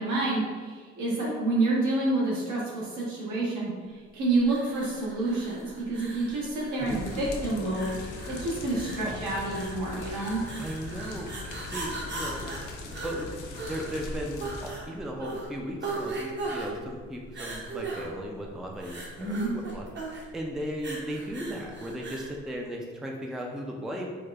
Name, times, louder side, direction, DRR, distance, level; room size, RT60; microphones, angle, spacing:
voice 1, 0.0-10.4 19.2-19.5, right 2 dB, 75° right, -6 dB, 1.3 m, -28 dB
sound 1, 4.4-22.4, right 2 dB, 40° right, 0.8 m, -39 dB
sound 2, 6.8-14.7, left 3 dB, 80° left, 0.6 m, -40 dB
voice 2, 10.6-11.3 11.7-13.3 13.7-24.1, equal, ahead, 0 dB, 0.3 m, -36 dB
4.8 x 2.1 x 2.3 m, 1.5 s
cardioid pair, 90°, 30 cm